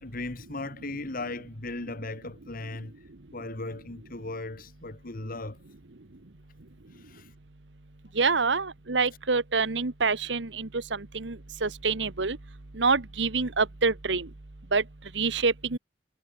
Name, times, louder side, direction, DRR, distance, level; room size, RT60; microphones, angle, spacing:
voice 1, 0.0-2.9 3.3-5.6 6.9-7.3, left 2 dB, 50° left, 1.9 m, -37 dB
voice 2, 8.2-11.4 11.6-12.4 12.8-14.3 14.7-14.8 15.1-15.8, right 4 dB, 75° right, 1.3 m, -26 dB
head